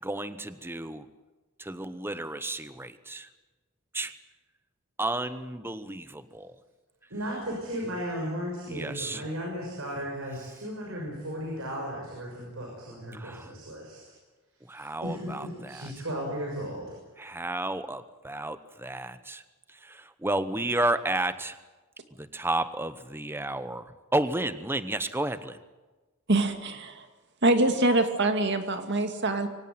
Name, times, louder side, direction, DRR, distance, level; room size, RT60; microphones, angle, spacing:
voice 1, 0.0-1.1 1.6-3.3 3.9-4.1 5.0-6.6 8.7-9.2 13.1-13.5 14.7-15.9 17.2-19.4 19.7-21.6 22.2-25.6, right 1 dB, 10° right, 12 dB, 0.9 m, -32 dB
voice 2, 7.1-14.0 14.7-16.9, equal, 70° right, -1 dB, 6.3 m, -35 dB
voice 3, 26.3-27.1 27.4-29.5, right 2 dB, 55° right, 7 dB, 2.3 m, -24 dB
24.0 x 17.5 x 9.3 m, 1.2 s
head